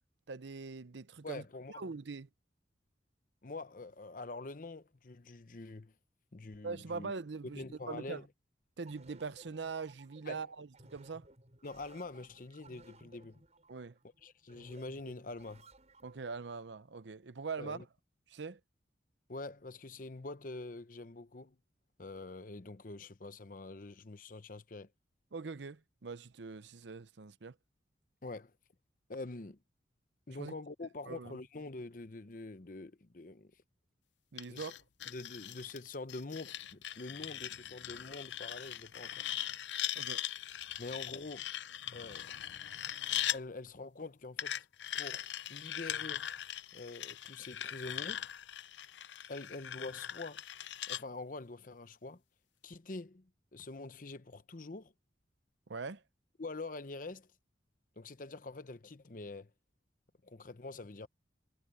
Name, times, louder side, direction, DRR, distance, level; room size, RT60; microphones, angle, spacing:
voice 1, 0.3-1.4 1.8-2.3 6.6-8.2 8.8-11.3 13.7-13.9 16.0-17.9 18.3-18.6 25.3-27.5 30.4-30.5 31.1-31.4 34.3-34.8 40.0-40.2 55.7-56.0, right 4 dB, 75° right, 0.7 m, -42 dB
voice 2, 1.2-1.8 3.4-5.9 6.3-7.1 7.4-8.3 10.3-10.5 11.6-13.4 14.2-15.7 17.6-17.8 19.3-21.6 22.0-24.9 28.2-28.5 29.1-29.6 30.3-33.5 34.5-34.7 35.1-39.3 40.8-41.5 41.9-42.3 43.3-44.7 44.9-46.3 46.7-48.3 49.3-50.4 50.9-52.2 52.6-54.9 56.4-57.3 58.0-59.5 60.2-61.1, left 2 dB, 45° left, 0.8 m, -45 dB
sound 1, 8.9-16.4, right 2 dB, 40° right, 6.4 m, -59 dB
sound 2, 34.4-43.4 44.4-51.0, left 11 dB, 80° left, 0.6 m, -40 dB
head